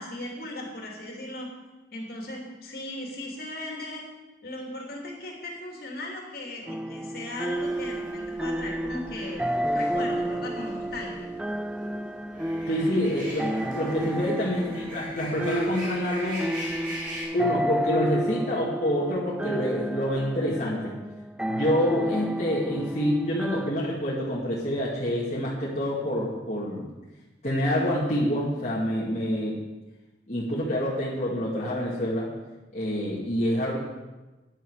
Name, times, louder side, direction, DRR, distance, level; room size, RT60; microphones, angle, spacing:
voice 1, 0.0-1.5 1.9-4.0 4.4-9.4 9.7-11.3 12.7-13.0 14.1-14.3, left 1 dB, 55° left, 0 dB, 2.9 m, -37 dB
sound 1, 6.7-23.7, right 1 dB, 5° right, 0.3 m, -31 dB
sound 2, 7.5-17.2, equal, 50° right, 5.4 m, -41 dB
voice 2, 12.7-16.5 17.3-20.9 21.5-26.9 27.4-29.6 30.3-32.3 32.7-33.8, equal, 40° left, -7 dB, 2.4 m, -27 dB
14.5 x 10.0 x 4.9 m, 1.1 s
head